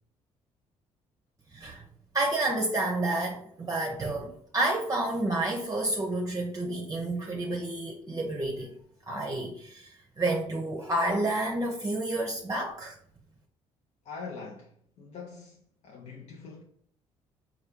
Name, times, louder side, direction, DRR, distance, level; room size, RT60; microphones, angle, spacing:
voice 1, 1.5-1.8 2.1-8.7 9.1-13.0, right 2 dB, 30° right, 0.7 m, -30 dB
voice 2, 14.0-16.6, left 4 dB, 60° left, 0.7 m, -43 dB
4.3 x 2.3 x 3.5 m
supercardioid pair, 65°, 13 cm